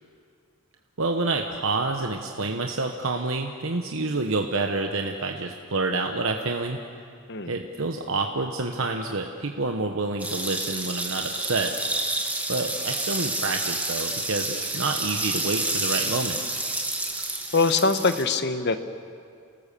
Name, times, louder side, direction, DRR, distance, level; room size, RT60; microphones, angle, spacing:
voice 1, 1.0-6.8 7.5-11.7 12.5-16.4, right 3 dB, 60° right, 3 dB, 1.1 m, -28 dB
sound 1, 10.2-18.2, right 2 dB, 5° right, 1.6 m, -29 dB
voice 2, 17.5-18.8, left 4 dB, 50° left, 9 dB, 1.2 m, -22 dB
28.5 x 19.5 x 6.9 m, 2.3 s
head